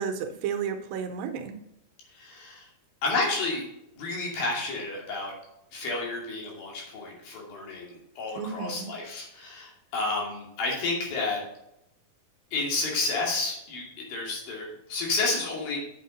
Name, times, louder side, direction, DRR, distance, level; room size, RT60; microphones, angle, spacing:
voice 1, 0.0-1.6 8.4-8.9, right 7 dB, 80° right, 5 dB, 2.7 m, -32 dB
voice 2, 2.1-2.7 3.0-3.6 4.0-5.3 5.7-11.4 12.5-15.8, left 3 dB, 75° left, -2 dB, 4.4 m, -31 dB
8.6 x 7.3 x 4.0 m, 0.83 s
omnidirectional pair, 4.1 m